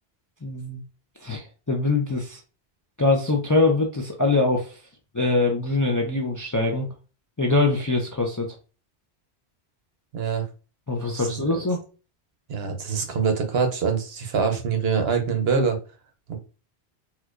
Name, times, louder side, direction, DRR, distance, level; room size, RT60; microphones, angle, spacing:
voice 1, 0.4-0.8 1.2-2.4 3.0-4.8 5.1-6.9 7.4-8.5 10.9-11.8, left 3 dB, 30° left, 1 dB, 0.4 m, -23 dB
voice 2, 10.1-10.5 11.1-11.6 12.5-15.8 16.3-16.4, right 6 dB, 70° right, 5 dB, 1.0 m, -24 dB
4.4 x 2.3 x 2.4 m, 0.34 s
omnidirectional pair, 1.1 m